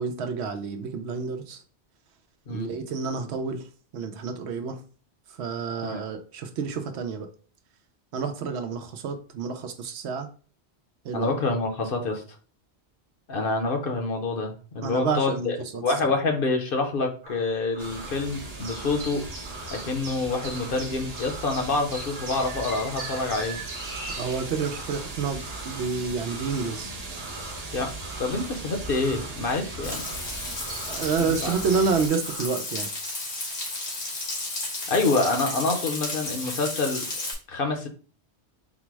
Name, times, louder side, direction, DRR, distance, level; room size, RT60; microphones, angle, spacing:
voice 1, 0.0-1.6 2.5-3.6 3.9-4.8 5.4-7.3 8.1-10.3 11.0-11.4 14.8-15.8 24.2-26.9 30.9-32.9, right 5 dB, 85° right, 0.9 m, -29 dB
voice 2, 11.1-12.2 13.3-15.6 15.8-19.2 19.7-23.6 27.7-27.9 28.2-30.0 31.3-31.5 34.9-37.1 37.5-37.9, left 3 dB, 60° left, 0.9 m, -27 dB
sound 1, 17.2-32.5, right 2 dB, 40° right, 0.9 m, -45 dB
sound 2, 17.8-32.1, right 2 dB, 65° right, 1.1 m, -37 dB
Frying (food), 29.8-37.3, left 2 dB, 80° left, 1.5 m, -33 dB
4.0 x 2.0 x 4.5 m
omnidirectional pair, 1.1 m